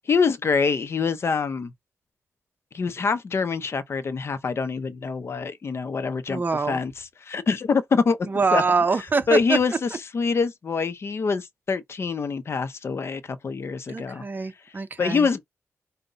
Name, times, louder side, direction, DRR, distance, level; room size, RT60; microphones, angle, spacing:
voice 1, 0.1-1.7 2.7-6.4 6.7-6.9 7.2-8.2 8.5-8.6 9.3-14.2 15.0-15.4, left 5 dB, 55° left, 0.7 m, -25 dB
voice 2, 6.3-6.8 8.2-9.6 13.9-15.3, right 4 dB, 40° right, 0.7 m, -24 dB
5.4 x 2.2 x 3.9 m
cardioid pair, 75°, 5 cm